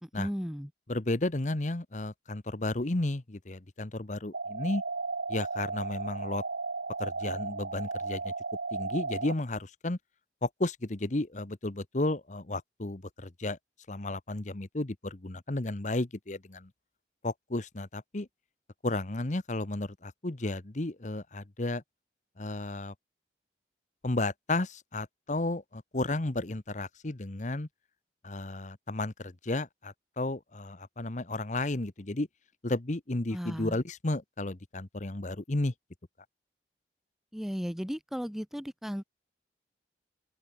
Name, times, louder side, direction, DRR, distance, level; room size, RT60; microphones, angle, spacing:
voice 1, 0.0-0.7 33.3-33.8 37.3-39.0, equal, ahead, 0.7 m, -35 dB
voice 2, 0.9-4.8 5.3-6.4 7.0-8.3 8.7-10.0 10.4-13.6 13.9-16.7 17.2-18.3 18.8-21.8 22.4-22.9 24.0-27.7 28.2-32.3 32.6-35.7, left 2 dB, 45° left, 1.1 m, -33 dB
sound 1, 4.3-9.3, right 3 dB, 80° right, 1.6 m, -35 dB
head